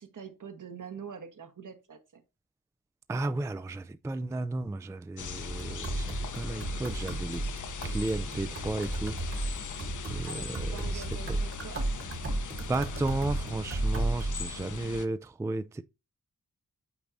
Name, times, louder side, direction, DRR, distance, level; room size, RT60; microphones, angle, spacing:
voice 1, 0.0-2.2 10.2-11.9 12.3-12.7 13.7-13.9, right 6 dB, 65° right, 1.3 m, -45 dB
voice 2, 3.1-7.5 7.8-9.2 10.1-11.0 11.3-11.4 12.7-15.8, right 2 dB, 10° right, 0.3 m, -33 dB
sound 1, 5.2-15.1, left 6 dB, 65° left, 0.8 m, -40 dB
sound 2, 5.5-14.4, right 2 dB, 40° right, 1.3 m, -34 dB
8.5 x 4.6 x 2.6 m
wide cardioid pair, 115°, 33 cm